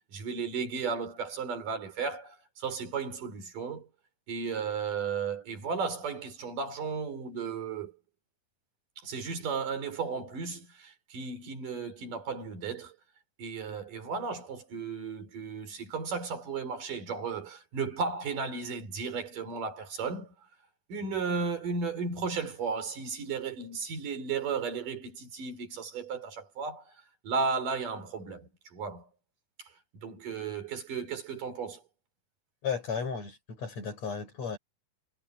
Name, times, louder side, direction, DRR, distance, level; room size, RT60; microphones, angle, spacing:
voice 1, 0.0-3.9 4.3-7.9 9.0-12.9 13.4-20.3 20.9-26.8 27.2-29.1 30.0-31.8, right 5 dB, 80° right, 6.0 m, -34 dB
voice 2, 32.6-34.6, left 6 dB, 55° left, 6.3 m, -34 dB
omnidirectional pair, 3.7 m